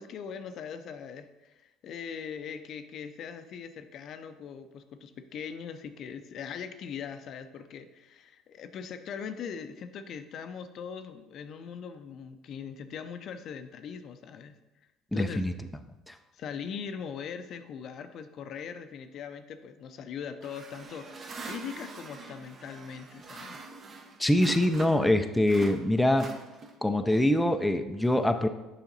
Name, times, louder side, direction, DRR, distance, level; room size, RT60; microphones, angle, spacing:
voice 1, 0.0-14.5 15.1-15.4 16.3-23.6, left 7 dB, 55° left, 9 dB, 0.5 m, -41 dB
voice 2, 15.1-15.5 16.1-16.2 24.2-26.3 26.8-28.5, left 1 dB, 5° left, 7 dB, 0.5 m, -24 dB
sound 1, 20.4-25.1 25.4-26.9, right 4 dB, 40° right, 0.9 m, -44 dB
7.1 x 5.0 x 4.0 m, 1.0 s
supercardioid pair, 85°, 0 cm